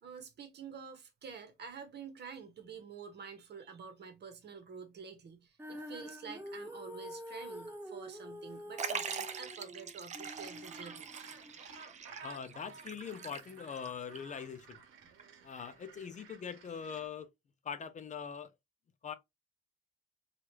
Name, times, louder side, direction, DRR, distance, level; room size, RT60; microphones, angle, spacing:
voice 1, 0.0-11.1, right 6 dB, 55° right, 1.0 m, -48 dB
Female singing, 5.6-11.8, equal, 10° right, 1.1 m, -47 dB
Liquid, 8.8-13.9 14.2-14.3 15.2-15.3, right 6 dB, 35° right, 0.5 m, -42 dB
Gull seagull, 10.3-17.1, right 5 dB, 85° right, 0.9 m, -54 dB
voice 2, 12.2-14.8 15.4-17.3 17.6-18.5 19.0-19.1, left 7 dB, 40° left, 0.5 m, -42 dB
3.1 x 2.4 x 2.8 m
cardioid pair, 90°, 20 cm